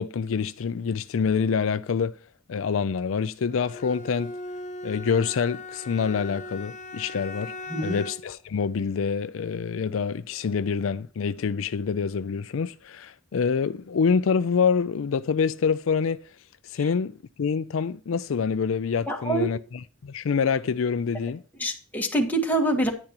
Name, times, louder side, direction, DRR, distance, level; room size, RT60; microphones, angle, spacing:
voice 1, 0.0-2.2 2.5-4.3 4.8-7.5 7.8-16.2 16.6-19.6 20.0-21.4, left 6 dB, 75° left, 0.4 m, -26 dB
Bowed string instrument, 3.5-8.3, left 2 dB, 35° left, 0.8 m, -39 dB
voice 2, 19.1-19.5 21.6-22.9, right 2 dB, 10° left, 1.6 m, -25 dB
10.5 x 10.0 x 2.9 m
head